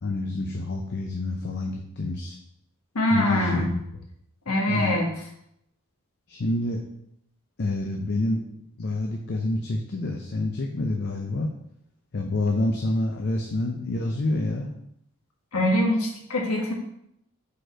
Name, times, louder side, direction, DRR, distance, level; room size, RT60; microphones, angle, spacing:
voice 1, 0.0-2.4 3.1-3.8 4.7-5.0 6.3-6.8 7.6-8.4 8.8-11.5 12.1-14.7, left 2 dB, 50° left, 2 dB, 0.6 m, -27 dB
voice 2, 2.9-3.7 4.5-5.1 15.5-16.7, left 1 dB, 80° left, 0 dB, 1.4 m, -23 dB
5.2 x 4.2 x 4.4 m, 0.76 s
head